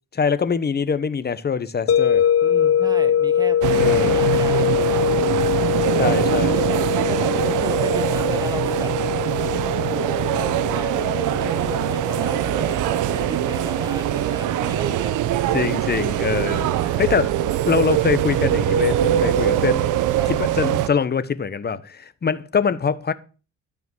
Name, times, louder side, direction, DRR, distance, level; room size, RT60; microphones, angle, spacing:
voice 1, 0.1-2.3 3.8-4.3 6.0-6.6 15.5-17.3 17.6-19.8 20.3-23.1, left 6 dB, 35° left, 1.1 m, -23 dB
sound 1, 1.9-16.8, left 9 dB, 50° left, 0.7 m, -24 dB
voice 2, 2.4-5.1 6.5-8.9 9.9-15.1 20.1-20.3, right 1 dB, 15° right, 1.3 m, -35 dB
sound 2, 3.6-20.9, right 12 dB, 85° right, 0.8 m, -22 dB
12.5 x 5.0 x 7.9 m
cardioid pair, 90°, 30 cm